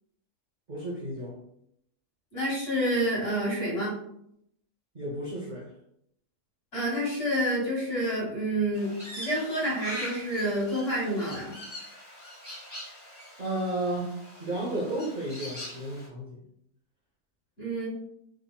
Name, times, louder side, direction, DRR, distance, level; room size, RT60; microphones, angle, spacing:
voice 1, 0.7-1.4 4.9-5.7 13.4-16.4, right 1 dB, 50° right, -4 dB, 0.5 m, -33 dB
voice 2, 2.3-4.0 6.7-11.5 17.6-17.9, equal, 40° left, -7 dB, 1.7 m, -28 dB
Crow, 8.7-16.1, equal, 10° left, 0.7 m, -42 dB
3.6 x 3.4 x 2.2 m, 0.74 s
omnidirectional pair, 1.7 m